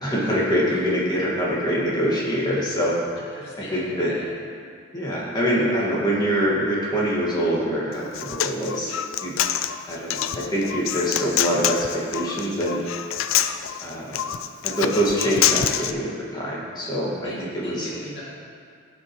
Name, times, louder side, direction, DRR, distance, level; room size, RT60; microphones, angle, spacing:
voice 1, 0.0-3.0 3.7-4.1 4.9-8.9 9.2-9.4 9.9-12.8 13.8-14.2 14.6-17.9, equal, 20° left, -5 dB, 1.8 m, -24 dB
voice 2, 3.3-4.3 17.2-18.2, equal, 55° left, -7 dB, 2.3 m, -38 dB
Human voice, 7.9-15.9, left 10 dB, 80° left, 0.4 m, -26 dB
16.5 x 6.0 x 3.1 m, 2.2 s
head